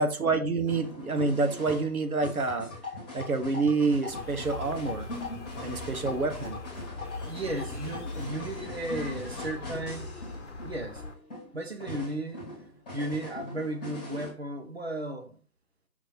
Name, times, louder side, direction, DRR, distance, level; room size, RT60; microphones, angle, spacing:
voice 1, 0.0-2.7 3.1-5.1 5.6-6.6, right 3 dB, 60° right, 1.3 m, -27 dB
sound 1, 0.7-14.3, left 2 dB, 5° left, 1.6 m, -41 dB
sound 2, 4.1-11.2, left 3 dB, 45° left, 1.0 m, -41 dB
voice 2, 7.2-10.1 10.6-11.0 11.5-12.4 12.9-15.4, right 1 dB, 40° right, 1.0 m, -34 dB
6.4 x 6.2 x 2.9 m
figure-of-eight pair, 160°, 48 cm